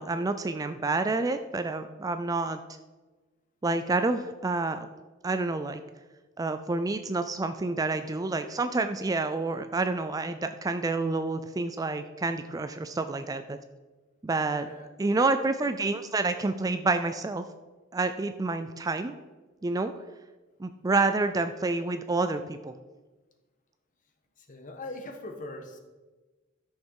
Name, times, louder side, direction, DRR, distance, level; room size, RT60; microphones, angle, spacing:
voice 1, 0.0-2.6 3.6-4.9 5.2-5.8 6.4-13.6 14.2-14.7 15.0-17.4 17.9-19.1 19.6-19.9 20.6-22.7, right 3 dB, 20° right, 9 dB, 0.3 m, -28 dB
voice 2, 24.4-25.8, left 2 dB, 40° left, 5 dB, 1.3 m, -41 dB
13.0 x 6.5 x 4.7 m, 1.2 s
head